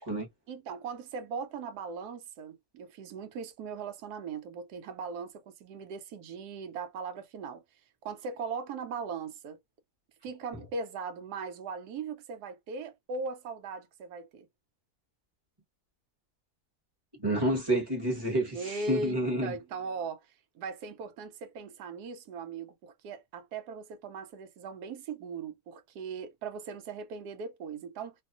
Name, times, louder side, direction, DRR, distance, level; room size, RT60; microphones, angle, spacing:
voice 1, 0.5-7.6 8.0-9.6 10.2-14.5 18.5-20.3 20.5-28.1, right 4 dB, 90° right, 1.1 m, -39 dB
voice 2, 17.2-19.5, right 1 dB, 20° right, 0.9 m, -29 dB
2.7 x 2.4 x 2.4 m
omnidirectional pair, 1.7 m